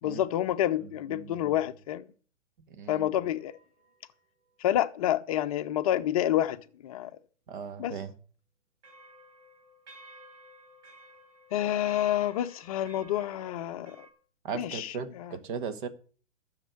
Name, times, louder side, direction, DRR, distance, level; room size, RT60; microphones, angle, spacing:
voice 1, 0.0-2.1 2.9-3.5 4.6-7.1 7.8-8.0 11.5-14.1 14.5-15.4, left 12 dB, 30° left, 0.8 m, -29 dB
voice 2, 0.8-1.5 2.7-3.1 7.5-8.1 14.4-15.9, right 6 dB, 45° right, 1.7 m, -38 dB
sound 1, 3.4-4.0 8.8-14.1, right 1 dB, 70° right, 5.3 m, -54 dB
12.5 x 6.7 x 8.1 m
figure-of-eight pair, 125°, 35 cm